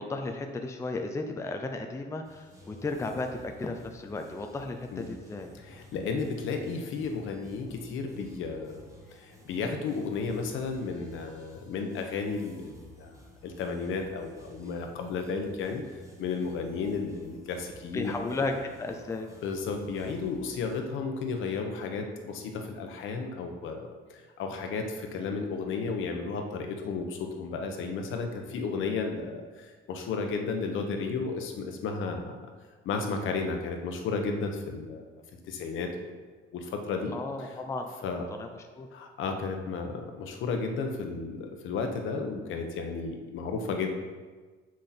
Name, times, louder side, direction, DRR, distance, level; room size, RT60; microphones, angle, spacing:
voice 1, 0.0-5.5 17.9-19.3 37.1-38.1 38.4-38.5 38.8-38.9, left 3 dB, 15° left, 4 dB, 0.5 m, -34 dB
sound 1, 2.2-20.8, equal, 15° right, 1.5 m, -53 dB
voice 2, 5.6-8.8 9.1-13.1 13.4-15.8 16.2-18.4 19.4-32.4 32.8-35.1 35.5-36.1 36.5-37.1 38.0-38.3 38.9-43.9, left 4 dB, 70° left, 4 dB, 1.1 m, -33 dB
7.7 x 6.4 x 4.3 m, 1.4 s
cardioid pair, 155°, 21 cm